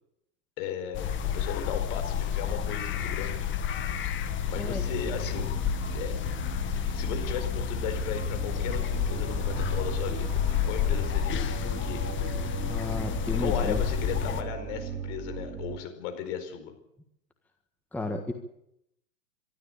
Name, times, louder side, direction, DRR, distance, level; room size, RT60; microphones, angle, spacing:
voice 1, 0.6-3.5 4.5-5.5 5.9-6.2 6.9-10.4 10.6-12.0 13.4-16.7, left 8 dB, 45° left, 7 dB, 4.9 m, -36 dB
sound 1, 0.9-14.4, left 8 dB, 25° left, 1.8 m, -30 dB
sound 2, 4.5-15.8, right 7 dB, 30° right, 4.2 m, -38 dB
voice 2, 12.7-13.8 17.9-18.3, left 2 dB, 5° left, 4 dB, 1.5 m, -32 dB
23.5 x 13.0 x 8.8 m, 0.80 s
hypercardioid pair, 115°, 50 cm